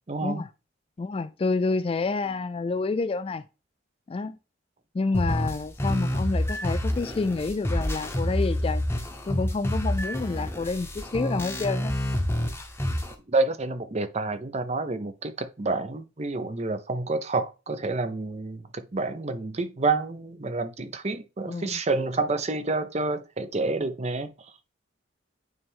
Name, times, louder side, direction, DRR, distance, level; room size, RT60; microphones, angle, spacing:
voice 1, 0.1-0.5 13.3-24.3, right 3 dB, 35° right, 0.7 m, -28 dB
voice 2, 1.0-3.4 4.1-4.4 4.9-8.9 9.3-11.9 21.5-21.8, left 3 dB, 30° left, 0.3 m, -28 dB
sound 1, 5.1-13.1, left 1 dB, 10° left, 0.9 m, -28 dB
9.4 x 3.3 x 3.6 m
head